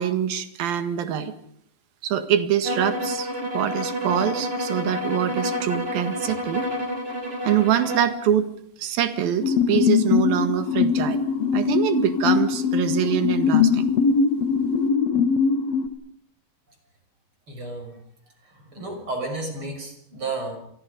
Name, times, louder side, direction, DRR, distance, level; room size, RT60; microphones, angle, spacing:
voice 1, 0.0-1.3 2.0-3.3 3.5-6.7 7.5-8.5 8.8-11.2 11.5-13.9, right 9 dB, 75° right, 10 dB, 3.5 m, -24 dB
sound 1, 2.6-8.2, equal, 20° right, 2.2 m, -29 dB
sound 2, 9.4-15.9, left 6 dB, 55° left, 2.3 m, -21 dB
voice 2, 17.5-18.0 18.4-20.6, right 3 dB, 35° right, 4 dB, 6.8 m, -32 dB
29.0 x 24.0 x 5.3 m, 0.70 s
omnidirectional pair, 4.2 m